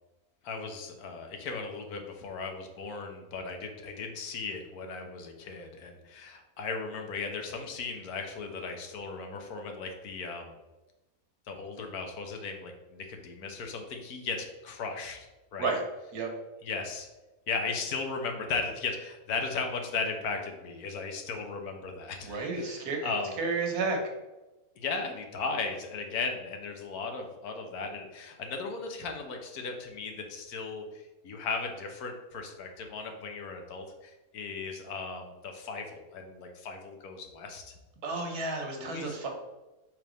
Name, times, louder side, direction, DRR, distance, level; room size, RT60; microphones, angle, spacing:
voice 1, 0.4-10.6 11.5-15.7 16.6-17.1 17.5-23.4 24.8-37.7 38.8-39.2, left 4 dB, 75° left, 4 dB, 1.4 m, -36 dB
voice 2, 22.2-23.1 23.4-24.0 38.0-39.3, right 3 dB, 85° right, 3 dB, 1.7 m, -31 dB
6.0 x 3.5 x 5.1 m, 1.1 s
omnidirectional pair, 1.6 m